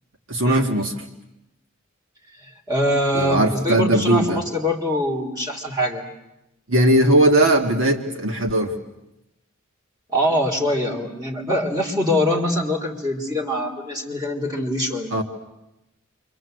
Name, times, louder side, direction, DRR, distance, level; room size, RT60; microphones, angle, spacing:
voice 1, 0.3-0.9 3.1-4.4 6.7-8.8 15.1-15.2, right 1 dB, 70° right, 4 dB, 1.9 m, -18 dB
voice 2, 2.4-6.0 10.1-15.1, left 1 dB, 20° right, 1 dB, 3.5 m, -23 dB
28.5 x 25.5 x 7.9 m, 0.92 s
head